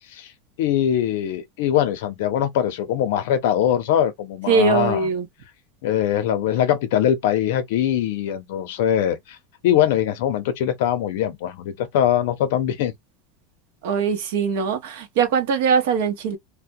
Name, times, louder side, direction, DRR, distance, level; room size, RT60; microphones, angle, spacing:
voice 1, 0.6-5.1 5.8-9.4 9.6-12.9, left 10 dB, 65° left, 0.6 m, -22 dB
voice 2, 4.5-5.3 13.8-16.4, right 5 dB, 65° right, 0.8 m, -21 dB
2.2 x 2.1 x 2.6 m
supercardioid pair, 180°, 0 cm